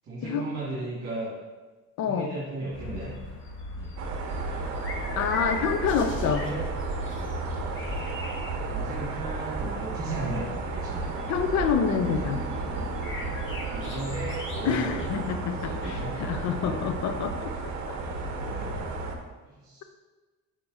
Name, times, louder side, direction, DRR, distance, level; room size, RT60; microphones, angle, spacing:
voice 1, 0.0-1.4 2.0-3.1 3.7-4.0 6.0-6.6 8.7-11.3 12.0-12.4 13.7-15.0 15.5-16.1 16.4-16.9 18.0-18.8 19.5-19.9, right 2 dB, 40° right, -7 dB, 1.9 m, -36 dB
voice 2, 2.0-2.3 5.2-6.4 11.3-12.4 14.6-15.7 16.2-17.5 17.9-18.0, left 6 dB, 55° left, 7 dB, 0.7 m, -27 dB
sound 1, 2.7-16.6, left 2 dB, 35° left, 1.1 m, -39 dB
sound 2, 4.0-19.2, right 3 dB, 60° right, 0.9 m, -33 dB
7.0 x 5.5 x 2.6 m, 1.3 s
cardioid pair, 110°, 33 cm